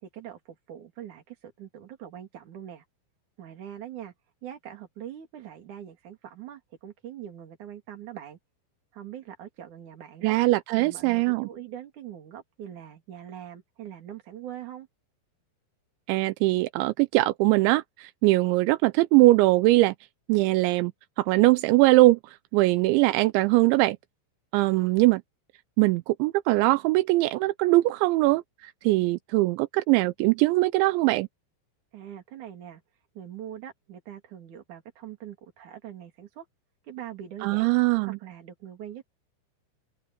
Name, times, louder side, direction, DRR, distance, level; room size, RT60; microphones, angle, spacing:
voice 1, 0.0-2.8 3.4-4.1 4.4-8.4 8.9-10.4 10.8-14.9 31.9-32.8 33.1-36.5 36.8-37.7 38.0-39.0, right 10 dB, 45° right, 3.4 m, -42 dB
voice 2, 10.2-11.5 16.1-19.9 20.3-20.9 21.2-24.0 24.5-25.2 25.8-31.3 37.4-38.2, right 20 dB, 85° right, 2.6 m, -21 dB
open air
omnidirectional pair, 5.9 m